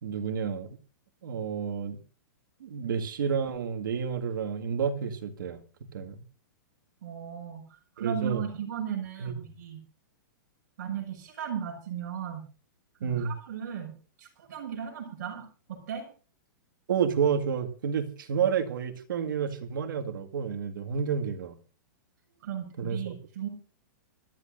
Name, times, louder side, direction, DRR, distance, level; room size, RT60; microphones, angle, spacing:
voice 1, 0.0-0.8 1.2-2.0 2.6-5.6 5.9-6.2 8.0-8.5 9.2-9.3 13.0-13.3 16.9-21.6 22.8-23.2, right 7 dB, 75° right, 5 dB, 2.1 m, -30 dB
voice 2, 7.0-7.6 8.0-9.8 10.8-12.5 13.0-13.9 14.2-16.1 22.4-23.5, right 8 dB, 50° right, 1 dB, 6.3 m, -36 dB
25.0 x 12.5 x 2.6 m, 0.37 s
hypercardioid pair, 170°, 11 cm